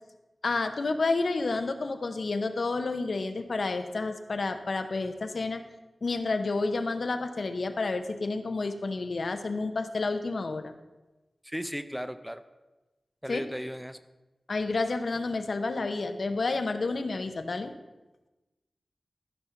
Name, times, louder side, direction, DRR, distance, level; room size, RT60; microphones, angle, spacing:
voice 1, 0.4-5.6 6.0-10.7 13.3-13.5 14.5-17.7, left 3 dB, 70° left, 7 dB, 0.9 m, -30 dB
voice 2, 11.4-12.4 13.2-14.0, equal, ahead, 10 dB, 0.6 m, -35 dB
13.5 x 5.5 x 5.8 m, 1.1 s
wide cardioid pair, 65°, 0 cm